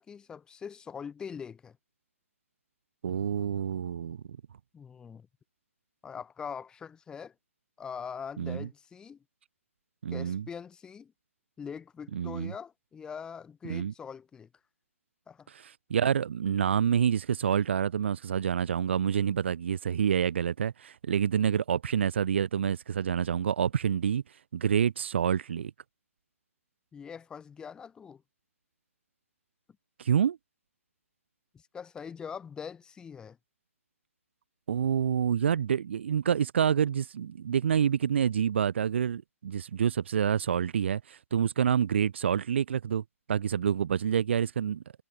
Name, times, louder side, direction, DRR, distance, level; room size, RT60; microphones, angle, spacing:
voice 1, 0.0-1.8 4.7-5.3 6.0-7.3 7.8-9.2 10.1-11.1 11.6-14.5 15.3-15.5 26.9-28.2 31.5-33.4, left 6 dB, 10° left, 4.6 m, -42 dB
voice 2, 3.0-4.2 8.4-8.7 10.0-10.5 12.1-12.5 13.6-13.9 15.5-24.2 24.5-25.7 30.0-30.4 34.7-44.8, right 8 dB, 50° right, 2.1 m, -27 dB
figure-of-eight pair, 130°, 8 cm